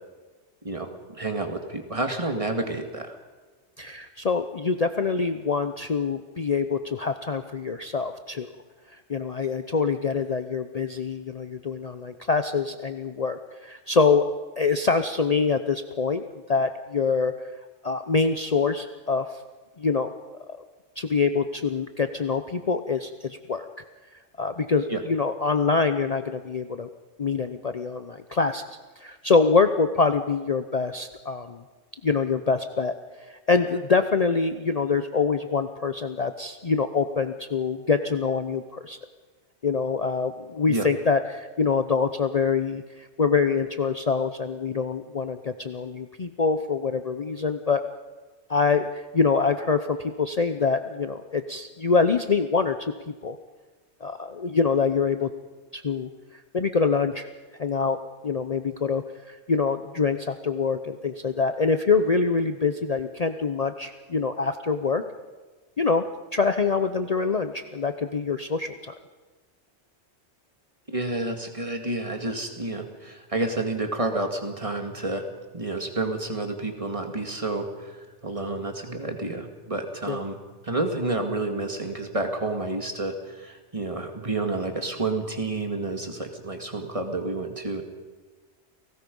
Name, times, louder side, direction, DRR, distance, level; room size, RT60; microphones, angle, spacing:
voice 1, 0.6-3.2 24.9-25.0 40.7-40.9 70.9-75.3 75.5-80.4 80.6-87.8, right 2 dB, 30° right, 4 dB, 2.2 m, -30 dB
voice 2, 3.8-8.5 9.1-14.2 14.6-17.3 17.8-19.2 19.8-20.1 21.0-23.7 24.4-26.9 27.2-28.6 29.0-31.6 32.0-32.9 33.2-39.0 39.6-47.8 48.5-52.8 53.1-53.4 54.0-55.3 55.7-56.1 56.5-57.3 57.6-58.0 58.2-65.0 65.8-68.9 80.1-80.2, left 5 dB, 40° left, 8 dB, 0.8 m, -25 dB
30.0 x 18.5 x 5.4 m, 1.3 s
omnidirectional pair, 1.2 m